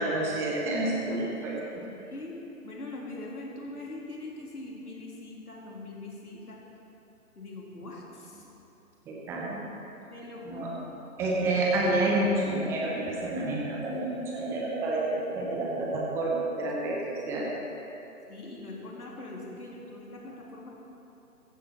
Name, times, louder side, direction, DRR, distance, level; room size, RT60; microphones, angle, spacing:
voice 1, 0.0-1.6 9.1-9.6 10.4-10.7 11.2-17.5, right 2 dB, 5° right, -3 dB, 0.8 m, -29 dB
voice 2, 1.8-2.4 2.6-6.6 7.4-8.5 10.1-10.9 18.3-20.8, left 2 dB, 70° left, -3 dB, 3.6 m, -42 dB
15.5 x 15.0 x 4.4 m, 3.0 s
figure-of-eight pair, 140°, 46 cm